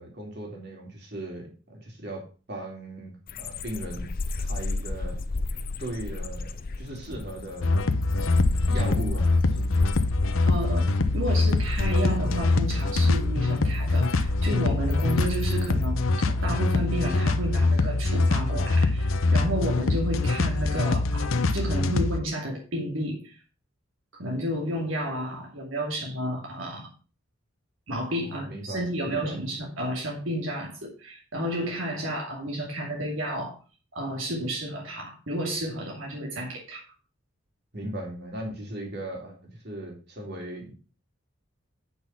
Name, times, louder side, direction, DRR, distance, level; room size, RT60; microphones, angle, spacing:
voice 1, 0.0-5.2 5.8-7.7 8.1-9.9 28.2-29.4 37.7-39.4 39.6-40.7, right 1 dB, 50° right, 0 dB, 3.4 m, -38 dB
sound 1, 3.3-15.9, left 2 dB, 45° left, 0.6 m, -34 dB
sound 2, 7.6-22.2, left 2 dB, 80° left, 0.9 m, -24 dB
voice 2, 10.4-23.4 24.1-26.9 27.9-33.5 33.9-36.8, equal, 75° right, -1 dB, 2.5 m, -31 dB
8.7 x 6.3 x 5.9 m, 0.36 s
head